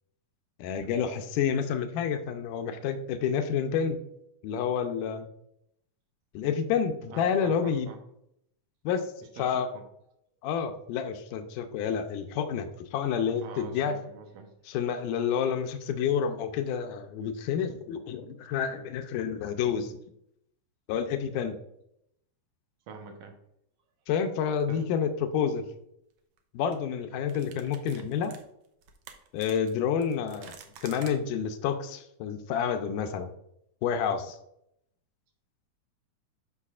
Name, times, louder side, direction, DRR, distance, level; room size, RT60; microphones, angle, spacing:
voice 1, 0.6-4.0 4.4-5.3 6.3-7.9 8.8-9.7 10.4-14.0 14.7-20.0 20.9-21.6 24.1-25.7 26.5-28.3 29.3-30.5 30.8-33.3 33.8-34.4, left 7 dB, 85° left, 7 dB, 2.3 m, -29 dB
voice 2, 7.1-8.0 9.4-9.8 13.4-14.5 21.3-21.4 22.9-23.3 24.7-24.9, right 4 dB, 70° right, 4 dB, 2.1 m, -44 dB
sound 1, 24.5-24.7 26.2-26.4 26.7-26.8 27.3-31.1, right 8 dB, 90° right, 1.3 m, -50 dB
12.5 x 5.4 x 2.4 m, 0.76 s
omnidirectional pair, 3.6 m